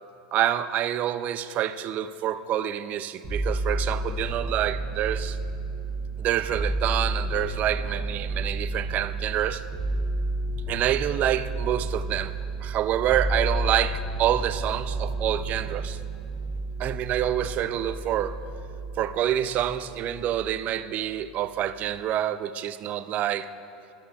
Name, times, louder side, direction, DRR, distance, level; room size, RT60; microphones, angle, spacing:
voice 1, 0.3-5.4 6.2-9.6 10.7-12.3 12.6-16.0 16.8-18.4 19.0-23.5, right 11 dB, 40° right, 14 dB, 0.4 m, -27 dB
sound 1, 3.2-20.7 21.0-21.8, right 2 dB, 25° right, 1.8 m, -31 dB
14.0 x 12.0 x 2.3 m, 2.7 s
hypercardioid pair, 90°, 4 cm